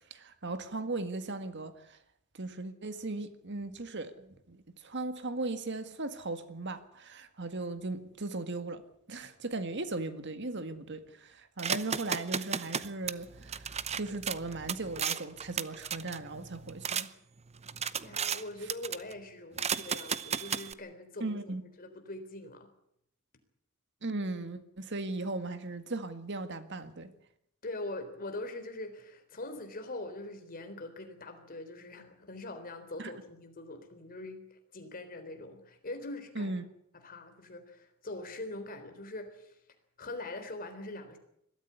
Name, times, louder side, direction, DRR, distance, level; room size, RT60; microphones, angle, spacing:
voice 1, 0.1-2.0 2.3-8.8 9.1-13.7 14.0-17.1 21.2-21.6 24.0-27.1 33.0-33.1 36.3-36.6, right 2 dB, 55° right, 1.8 m, -37 dB
sound 1, 11.6-17.1 17.5-18.4 18.7-19.1 19.6-20.7, right 7 dB, 30° right, 0.8 m, -35 dB
voice 2, 17.9-22.7 27.6-36.6 37.0-39.5 40.0-41.2, left 2 dB, 45° left, 3.7 m, -43 dB
21.0 x 13.5 x 9.7 m
head